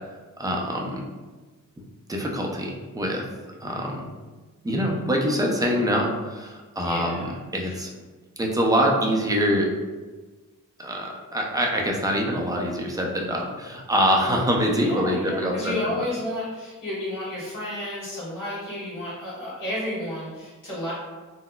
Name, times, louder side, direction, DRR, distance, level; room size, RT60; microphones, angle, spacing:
voice 1, 0.4-1.0 2.1-3.2 3.6-4.1 4.6-7.9 8.4-9.7 10.8-13.4 13.7-15.8, equal, 10° right, -1 dB, 0.4 m, -24 dB
voice 2, 6.8-7.8 14.7-20.9, left 1 dB, 70° left, -8 dB, 1.5 m, -32 dB
3.9 x 2.0 x 2.2 m, 1.3 s
wide cardioid pair, 90°, 33 cm